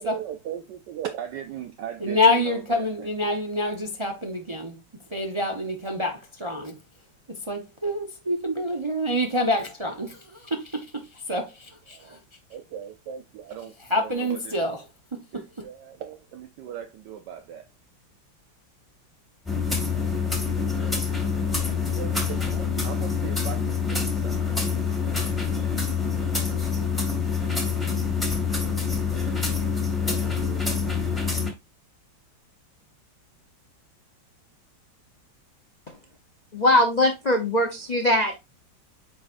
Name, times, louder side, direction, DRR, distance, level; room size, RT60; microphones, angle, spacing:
voice 1, 0.0-2.2 2.7-2.8 11.9-12.2 12.5-14.0 14.3-14.4 15.3-17.6 19.9-20.1 20.6-21.0 21.6-24.4 30.0-30.7, right 9 dB, 70° right, 1.2 m, -38 dB
voice 2, 2.0-4.8 5.1-6.8 7.3-12.2 13.8-15.6, left 1 dB, 40° right, 0.4 m, -27 dB
sound 1, 19.5-31.5, left 5 dB, ahead, 1.5 m, -26 dB
voice 3, 36.5-38.4, left 1 dB, 75° left, 0.3 m, -21 dB
8.3 x 4.7 x 2.5 m
omnidirectional pair, 2.1 m